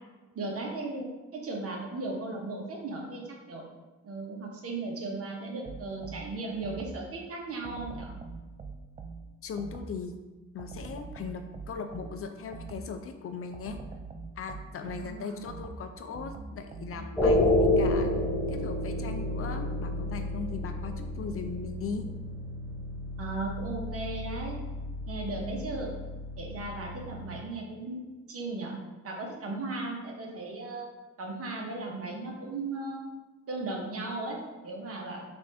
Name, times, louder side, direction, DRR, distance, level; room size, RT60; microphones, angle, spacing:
voice 1, 0.3-1.1 1.4-3.2 3.5-3.6 4.0-8.1 14.8-15.4 23.2-24.6 25.1-26.0 26.4-28.0 28.3-28.8 29.0-30.9 31.2-33.0 33.5-35.2, right 2 dB, 50° right, 0 dB, 1.0 m, -36 dB
sound 1, 5.6-7.2 7.6-10.1 10.6-13.1 13.5-17.3, right 4 dB, 25° right, 0.3 m, -44 dB
voice 2, 9.4-10.1 10.5-13.8 14.4-18.1 18.5-22.1, left 5 dB, 50° left, 6 dB, 0.4 m, -38 dB
sound 2, 17.2-27.4, left 1 dB, 5° left, 0.8 m, -30 dB
4.9 x 2.6 x 3.3 m, 1.2 s
cardioid pair, 90°, 30 cm